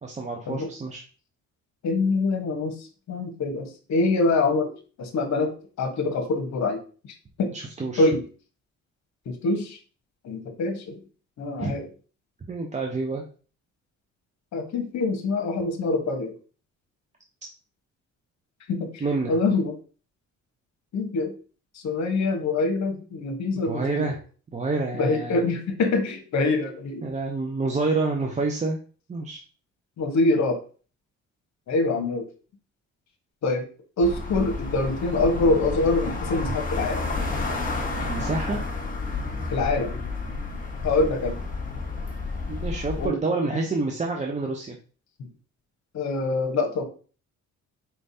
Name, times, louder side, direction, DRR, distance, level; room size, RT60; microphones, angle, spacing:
voice 1, 0.0-1.0 7.5-8.1 11.6-11.8 12.5-13.2 19.0-19.3 23.7-24.2 24.5-25.5 27.0-28.8 29.1-29.4 38.0-38.6 42.5-44.8, right 3 dB, 25° right, 1 dB, 0.7 m, -28 dB
voice 2, 1.8-6.8 7.4-7.5 8.0-8.2 9.2-9.8 10.2-11.0 11.4-11.9 14.5-16.3 18.7-19.8 20.9-21.3 21.7-24.1 25.0-27.0 30.0-30.6 31.7-32.3 33.4-33.7 34.0-37.1 39.5-40.0 40.8-41.4 43.0-43.2 43.5-43.6 45.9-46.8, left 3 dB, 65° left, 6 dB, 1.1 m, -25 dB
sound 1, 34.0-43.1, left 3 dB, 25° left, 1.3 m, -30 dB
4.5 x 3.4 x 2.7 m, 0.39 s
cardioid pair, 90°, 30 cm